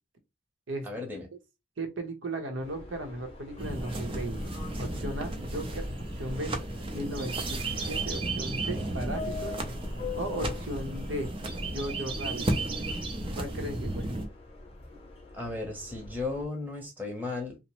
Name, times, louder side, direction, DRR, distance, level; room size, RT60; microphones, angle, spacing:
voice 1, 0.8-1.3 15.3-17.6, left 3 dB, 10° right, 0.8 m, -35 dB
voice 2, 1.8-4.4 4.8-5.8 6.2-6.5 6.9-9.5 10.2-11.3 11.7-12.5 13.4-14.1, right 1 dB, 80° right, 0.7 m, -36 dB
Subway metro underground, 2.6-16.4, left 5 dB, 30° left, 0.6 m, -45 dB
sound 1, 3.6-14.3, right 2 dB, 30° right, 0.5 m, -33 dB
2.9 x 2.0 x 3.0 m
head